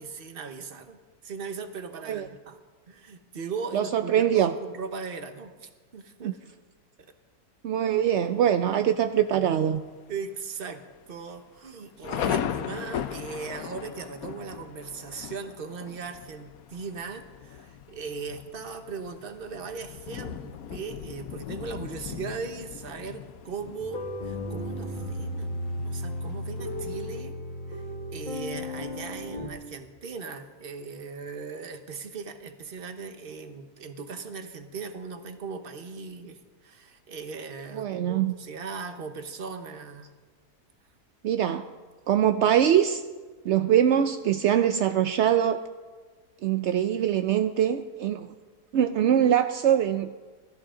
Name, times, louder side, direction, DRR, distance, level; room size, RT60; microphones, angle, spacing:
voice 1, 0.0-2.6 2.9-6.4 7.0-7.1 10.1-10.8 11.1-27.4 27.7-27.9 28.1-40.1, right 5 dB, 40° right, 7 dB, 1.2 m, -38 dB
voice 2, 3.7-4.5 6.2-6.3 7.6-9.8 37.7-38.3 41.2-41.7 42.1-43.0 43.4-45.6 46.4-48.3 48.7-50.1, right 10 dB, 70° right, 8 dB, 0.6 m, -23 dB
Thunder, 7.9-8.4 9.0-9.1 9.4-9.8 10.1-10.2 10.9-27.2, left 9 dB, 70° left, 1.1 m, -38 dB
sound 1, 23.8-29.5, left 1 dB, 30° left, 1.7 m, -34 dB
22.5 x 13.5 x 3.8 m, 1.4 s
omnidirectional pair, 1.7 m